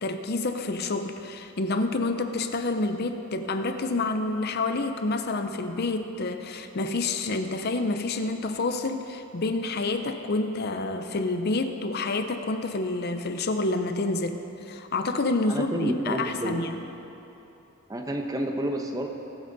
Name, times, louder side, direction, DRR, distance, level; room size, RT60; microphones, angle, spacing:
voice 1, 0.0-16.7, left 2 dB, 45° left, 7 dB, 0.6 m, -28 dB
voice 2, 15.5-16.6 17.9-19.1, right 1 dB, 15° right, 3 dB, 0.8 m, -29 dB
21.5 x 8.8 x 4.0 m, 3.0 s
head